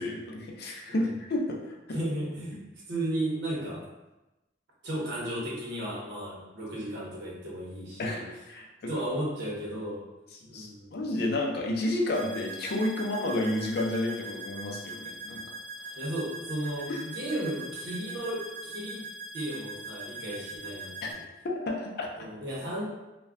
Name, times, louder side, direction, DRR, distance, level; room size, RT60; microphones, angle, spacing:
voice 1, 0.0-2.0 8.0-8.9 10.5-15.4 16.9-17.0 21.0-21.1 21.4-22.1, left 1 dB, 55° left, 0 dB, 0.5 m, -31 dB
voice 2, 1.9-2.6 2.9-3.8 4.8-8.3 8.9-10.1 10.5-11.0 15.9-19.1 19.3-21.2 22.2-22.8, right 1 dB, 65° right, -4 dB, 0.8 m, -34 dB
sound 1, 12.1-21.1, right 2 dB, 40° right, 0.4 m, -42 dB
2.5 x 2.2 x 3.4 m, 1.0 s
head